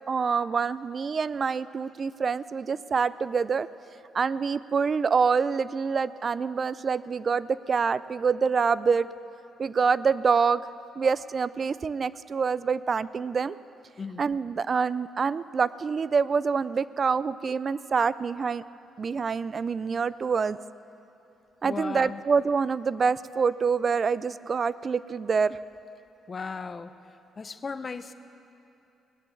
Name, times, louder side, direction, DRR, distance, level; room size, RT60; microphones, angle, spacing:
voice 1, 0.1-3.7 4.1-9.1 9.6-10.6 11.0-13.6 14.2-18.6 19.0-20.6 21.6-25.6, right 5 dB, 40° right, 17 dB, 0.4 m, -26 dB
voice 2, 21.6-22.2 26.3-26.9 27.4-28.1, left 5 dB, 35° left, 12 dB, 0.7 m, -36 dB
18.5 x 10.5 x 7.1 m, 2.8 s
cardioid pair, 90°, 0 cm